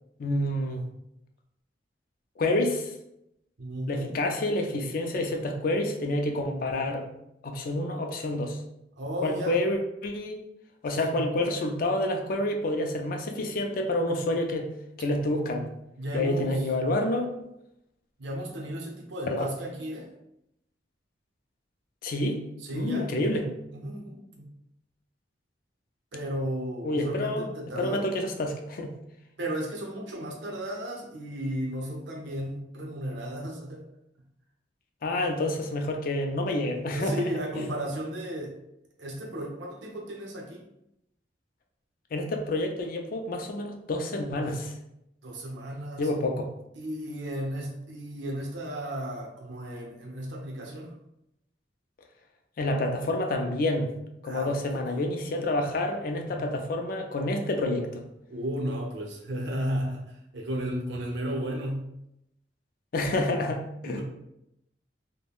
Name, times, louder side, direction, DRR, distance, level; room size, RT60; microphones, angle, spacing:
voice 1, 0.2-0.8 2.4-2.9 3.9-7.1 7.4-8.6 9.2-10.4 10.8-14.7 15.0-15.7 16.1-17.3 19.3-19.5 22.0-22.4 22.7-23.4 26.8-27.5 27.8-28.9 35.0-37.2 37.6-37.7 42.1-44.7 46.0-46.5 52.6-53.9 54.2-58.0 62.9-64.0, left 1 dB, 50° left, 4 dB, 0.4 m, -28 dB
voice 2, 3.6-4.1 8.9-9.6 10.9-11.3 16.0-16.7 18.2-20.1 22.6-23.1 23.7-24.5 26.1-28.0 29.4-33.8 36.9-38.6 39.0-40.6 45.2-46.1 46.7-50.9 54.3-55.1 56.3-56.6 58.3-61.9 63.8-64.0, equal, 75° right, 0 dB, 0.7 m, -34 dB
3.4 x 2.1 x 2.3 m, 0.82 s
head